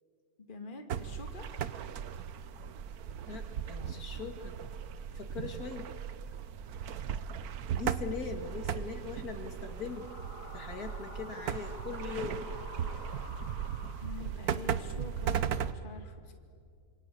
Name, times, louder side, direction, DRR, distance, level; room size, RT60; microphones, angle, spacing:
voice 1, 0.5-1.5 14.0-16.3, left 4 dB, 30° left, 4 dB, 2.3 m, -46 dB
sound 1, 0.9-15.7, right 8 dB, 70° right, 1.4 m, -37 dB
voice 2, 3.3-4.5 5.1-5.9 7.7-10.1 10.5-12.5, left 5 dB, 65° left, 5 dB, 2.7 m, -40 dB
sound 2, 9.5-14.5, equal, 55° right, 6.7 m, -49 dB
27.0 x 25.5 x 8.4 m, 2.2 s
omnidirectional pair, 1.7 m